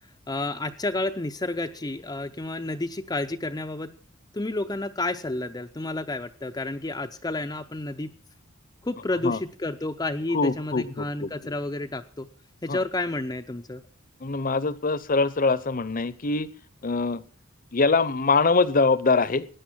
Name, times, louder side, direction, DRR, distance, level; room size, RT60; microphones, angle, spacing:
voice 1, 0.3-3.9 4.3-8.1 8.8-12.3 12.6-13.8, left 2 dB, 20° left, 6 dB, 0.6 m, -30 dB
voice 2, 10.3-11.5 12.7-12.8 14.2-16.5 16.8-17.2 17.7-19.5, left 3 dB, 45° left, 16 dB, 0.8 m, -23 dB
16.5 x 10.5 x 5.8 m, 0.43 s
head